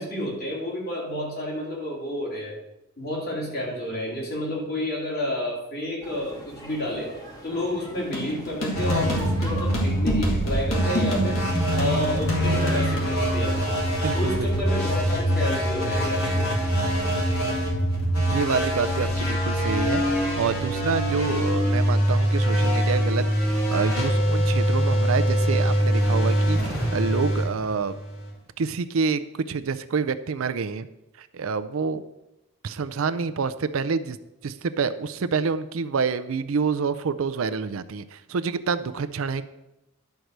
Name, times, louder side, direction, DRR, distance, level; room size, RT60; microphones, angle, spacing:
voice 1, 0.0-2.6 3.0-7.1 7.4-11.4 11.7-13.7 14.1-16.5, left 1 dB, 45° left, -3 dB, 3.0 m, -30 dB
sound 1, 6.0-15.2, equal, 15° left, 1.3 m, -41 dB
sound 2, 8.1-13.1, left 1 dB, 65° left, 2.3 m, -28 dB
sound 3, 8.7-28.3, equal, 90° left, 3.4 m, -24 dB
voice 2, 14.0-14.5 18.2-28.0 28.6-30.9 31.2-32.0 32.6-34.2 34.4-39.5, right 5 dB, 70° right, 11 dB, 0.5 m, -27 dB
11.5 x 4.6 x 6.5 m, 0.92 s
head